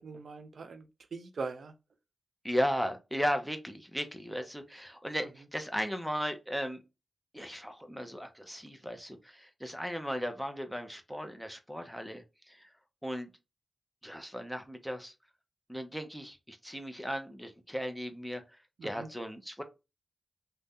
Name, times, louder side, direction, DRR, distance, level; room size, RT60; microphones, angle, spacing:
voice 1, 0.0-1.7 18.8-19.1, right 4 dB, 80° right, 0.4 m, -41 dB
voice 2, 2.4-6.8 7.3-12.7 13.0-13.3 14.0-15.1 15.7-18.4 18.8-19.6, equal, ahead, 0.7 m, -36 dB
2.6 x 2.2 x 3.5 m
wide cardioid pair, 75°, 0 cm